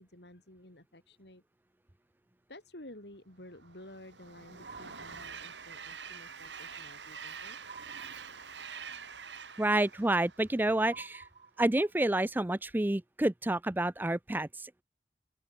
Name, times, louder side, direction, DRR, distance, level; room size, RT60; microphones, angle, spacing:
voice 1, 0.0-1.4 2.5-7.6, left 1 dB, 70° left, 6.1 m, -52 dB
Train, 3.5-11.0, right 6 dB, 90° right, 5.2 m, -46 dB
sound 1, 4.6-5.9 7.6-8.9 10.9-12.1, right 5 dB, 40° right, 2.3 m, -52 dB
voice 2, 9.6-11.2 11.6-14.8, right 1 dB, 10° right, 0.5 m, -29 dB
open air
head